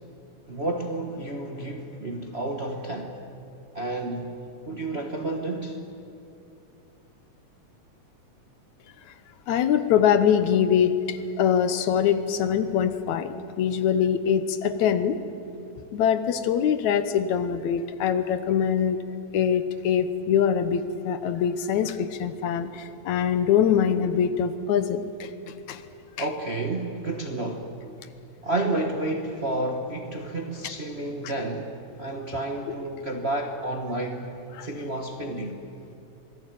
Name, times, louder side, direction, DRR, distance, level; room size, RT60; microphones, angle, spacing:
voice 1, 0.5-3.2 3.7-4.4 4.7-5.9 26.2-27.8 28.4-34.3 34.6-35.6, right 2 dB, 50° right, 0.7 m, -30 dB
voice 2, 9.5-13.3 13.6-15.2 15.9-19.0 19.3-25.8 34.6-34.7, left 8 dB, 80° left, 2.4 m, -23 dB
26.0 x 18.5 x 9.2 m
omnidirectional pair, 3.3 m